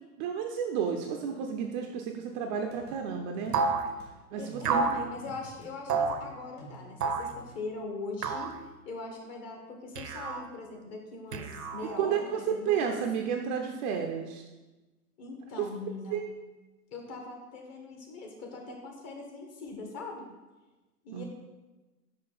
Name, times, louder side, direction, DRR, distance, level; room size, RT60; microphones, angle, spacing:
voice 1, 0.2-3.6 4.3-4.8 12.0-14.4 16.1-16.3 21.1-21.2, right 7 dB, 35° right, 3 dB, 0.5 m, -31 dB
sound 1, 2.7-4.1 4.5-7.6, right 1 dB, 65° left, 2.0 m, -50 dB
sound 2, 3.5-3.9 4.6-5.0 5.9-6.2 7.0-7.3 8.2-8.6 10.0-10.5 11.3-12.0, right 4 dB, 90° right, 0.8 m, -29 dB
voice 2, 4.4-8.5 8.8-12.8 15.2-16.2 16.9-20.3 21.0-21.3, left 3 dB, 35° left, 2 dB, 1.3 m, -41 dB
5.7 x 5.1 x 3.9 m, 1.1 s
hypercardioid pair, 110°, 46 cm